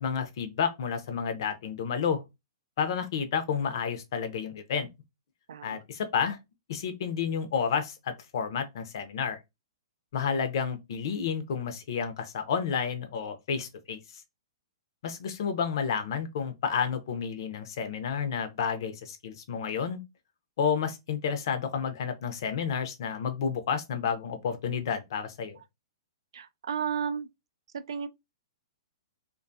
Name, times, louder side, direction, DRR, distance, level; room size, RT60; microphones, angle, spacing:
voice 1, 0.0-2.2 2.8-4.9 5.6-6.4 6.7-9.4 10.1-14.0 15.0-20.0 20.6-25.6, left 7 dB, 60° left, 0.6 m, -30 dB
voice 2, 5.5-5.8 26.3-27.3 27.9-28.1, right 7 dB, 80° right, 0.3 m, -32 dB
2.6 x 2.3 x 2.5 m
hypercardioid pair, 155°, 3 cm